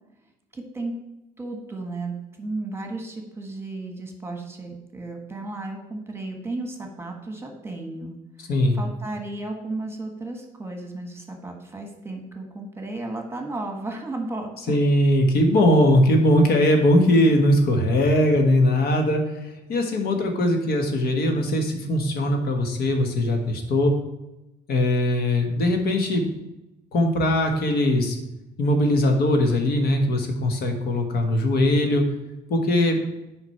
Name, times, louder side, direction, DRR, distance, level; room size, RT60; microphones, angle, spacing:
voice 1, 0.5-1.0 1.4-8.1 8.4-14.8, right 2 dB, 15° right, 3 dB, 1.3 m, -34 dB
voice 2, 8.5-8.8 14.7-23.9 24.7-26.3 26.9-28.2 28.6-32.0 32.5-33.0, left 1 dB, 65° left, 4 dB, 1.4 m, -20 dB
8.1 x 5.2 x 4.4 m, 0.95 s
cardioid pair, 110°, 17 cm